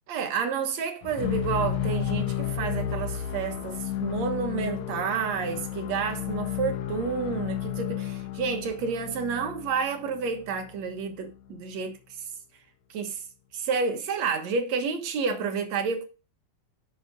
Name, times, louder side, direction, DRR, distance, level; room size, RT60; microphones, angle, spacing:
voice 1, 0.1-12.0 12.9-13.2 13.5-16.0, right 5 dB, 60° right, 2.0 m, -30 dB
sound 1, 1.0-11.1, left 10 dB, 85° left, 1.6 m, -32 dB
11.0 x 6.2 x 3.8 m
omnidirectional pair, 4.4 m